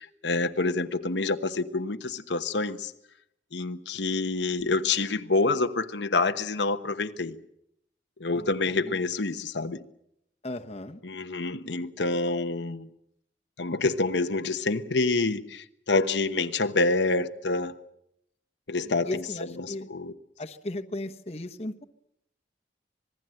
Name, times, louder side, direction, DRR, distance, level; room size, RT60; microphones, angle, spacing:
voice 1, 0.0-2.9 3.5-7.4 8.2-9.8 11.0-12.9 13.6-17.7 18.7-19.2 19.6-20.1, left 3 dB, 90° left, 1.2 m, -27 dB
voice 2, 10.4-11.0 18.8-19.9 20.4-21.8, left 1 dB, 35° left, 1.1 m, -36 dB
26.5 x 20.0 x 7.8 m
head